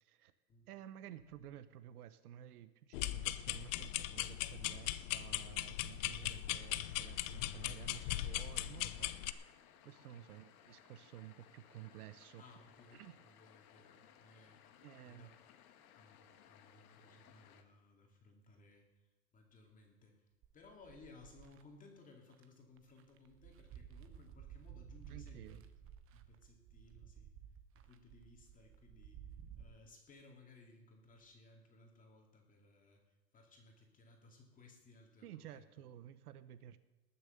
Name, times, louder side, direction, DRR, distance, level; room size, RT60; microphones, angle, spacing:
voice 1, 0.0-0.3 0.7-9.1 9.8-12.4 12.9-13.2 14.8-15.3 25.1-25.6 35.2-36.8, right 12 dB, 85° right, 13 dB, 0.9 m, -53 dB
sound 1, 2.9-9.3, left 15 dB, 55° left, 0.8 m, -39 dB
sound 2, 6.6-17.6, left 9 dB, 75° left, 1.7 m, -63 dB
voice 2, 12.4-14.6 15.0-15.3 16.0-16.2 16.5-18.9 19.3-20.3 20.5-25.7 26.1-27.3 27.7-29.2 29.6-35.7, left 3 dB, 20° left, 1 dB, 2.5 m, -61 dB
sound 3, 20.4-21.6 22.3-22.4 22.8-29.6, right 9 dB, 30° right, 1.0 m, -55 dB
19.5 x 7.0 x 6.6 m, 1.1 s
supercardioid pair, 145°, 44 cm